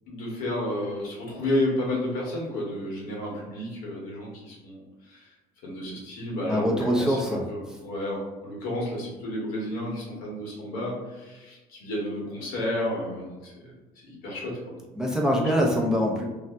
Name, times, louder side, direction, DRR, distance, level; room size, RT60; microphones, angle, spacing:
voice 1, 0.1-5.3 5.6-7.2 7.5-13.7 14.0-14.8, left 1 dB, 90° left, -3 dB, 1.1 m, -31 dB
voice 2, 6.5-7.8 15.0-16.2, equal, 5° right, -2 dB, 0.5 m, -24 dB
2.6 x 2.1 x 3.3 m, 1.2 s
cardioid pair, 115°, 14 cm